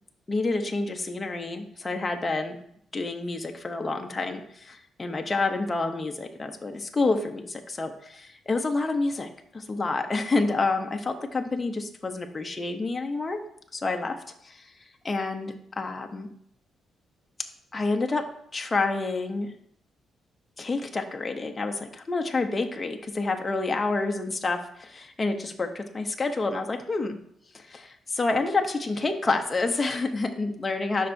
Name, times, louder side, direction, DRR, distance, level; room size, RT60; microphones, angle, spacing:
voice 1, 0.3-2.6 2.9-13.4 13.7-14.2 14.4-14.7 15.0-16.3 17.7-19.5 20.6-27.2 27.5-31.1, left 3 dB, 15° left, 4 dB, 0.6 m, -28 dB
12.0 x 5.5 x 2.6 m, 0.68 s
cardioid pair, 175°, 0 cm